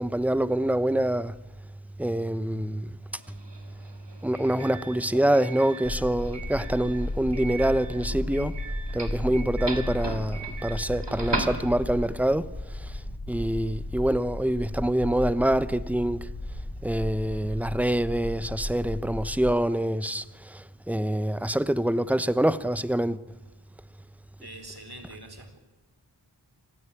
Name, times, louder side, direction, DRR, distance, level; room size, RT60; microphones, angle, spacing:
voice 1, 0.0-1.3 2.0-2.9 4.2-8.6 8.9-12.5 13.3-16.2 16.8-20.2 20.9-23.2, right 1 dB, 5° right, 0.9 m, -25 dB
Doorbell, 3.1-12.2, right 3 dB, 85° right, 2.7 m, -38 dB
sound 1, 5.8-19.5, left 1 dB, 65° left, 3.8 m, -34 dB
voice 2, 24.4-25.6, right 1 dB, 60° right, 4.5 m, -44 dB
26.5 x 16.5 x 8.4 m
wide cardioid pair, 50°, 42 cm